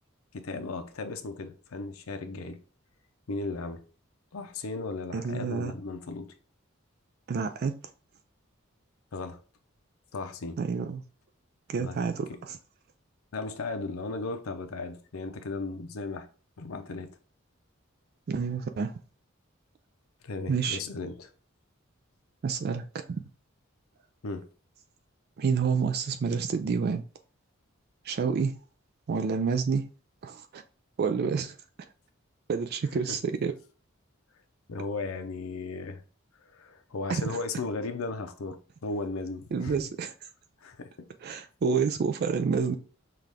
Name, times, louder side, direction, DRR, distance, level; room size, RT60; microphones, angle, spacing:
voice 1, 0.3-2.6 3.3-3.8 4.3-6.3 9.1-9.4 10.1-10.6 11.8-12.0 13.3-16.3 16.6-17.1 20.2-21.3 24.2-24.5 34.7-36.0 36.4-39.8 40.6-41.1, left 3 dB, 90° left, 0.6 m, -36 dB
voice 2, 5.1-5.7 7.3-7.8 10.6-11.0 11.7-12.6 18.3-18.9 20.5-20.8 22.4-23.2 25.4-27.0 28.0-28.5 29.1-29.8 30.2-30.6 31.0-31.6 32.5-33.5 37.1-37.4 39.5-40.1 41.2-42.8, right 5 dB, 50° right, 0.3 m, -28 dB
5.7 x 2.4 x 3.3 m
head